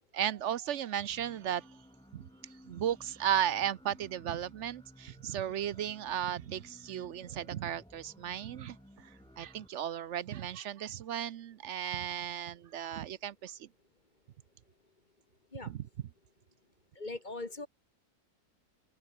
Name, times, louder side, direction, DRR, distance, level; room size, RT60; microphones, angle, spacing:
voice 1, 0.0-1.8 2.1-2.2 2.6-13.7 15.7-15.9, right 10 dB, 60° right, 0.8 m, -35 dB
sound 1, 1.1-9.7, equal, 5° left, 7.9 m, -57 dB
voice 2, 17.0-17.7, left 2 dB, 30° left, 2.0 m, -40 dB
omnidirectional pair, 1.7 m